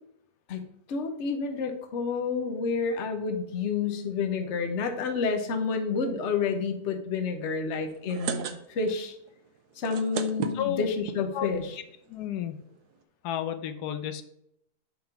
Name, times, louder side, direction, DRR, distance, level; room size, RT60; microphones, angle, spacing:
voice 1, 0.9-9.2 9.8-11.8, left 5 dB, 55° left, 5 dB, 1.1 m, -29 dB
sound 1, 7.9-9.0 9.3-9.4 9.7-11.2 11.9-12.0 12.2-12.3 12.5-12.7, right 7 dB, 80° right, 1.2 m, -34 dB
voice 2, 10.5-10.9 11.3-11.5 12.1-12.6 13.2-14.2, left 10 dB, 85° left, 9 dB, 1.2 m, -31 dB
6.7 x 3.8 x 5.8 m, 0.76 s
omnidirectional pair, 1.7 m